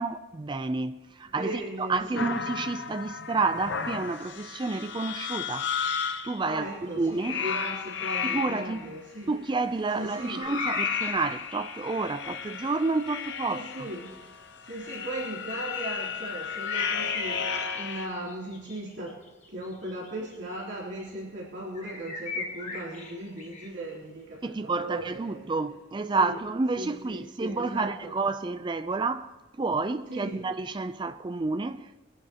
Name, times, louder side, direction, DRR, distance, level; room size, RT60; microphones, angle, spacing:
voice 1, 0.0-5.7 6.2-6.7 7.0-7.4 8.2-8.9 9.3-13.9 24.4-32.0, right 3 dB, 20° right, 0.4 m, -30 dB
voice 2, 1.2-2.3 6.4-9.3 9.9-10.4 13.5-14.1 14.6-19.2 19.5-25.6 26.1-26.4 26.7-28.1 30.1-30.4, right 1 dB, 60° right, 3.1 m, -37 dB
sound 1, 2.2-6.4 7.2-8.9 9.9-18.1, left 6 dB, 55° left, 0.7 m, -33 dB
sound 2, 10.4-11.7 14.0-14.1 16.4-20.4 20.7-20.8 21.7-23.7, left 3 dB, 35° left, 1.6 m, -38 dB
21.5 x 11.0 x 2.9 m
head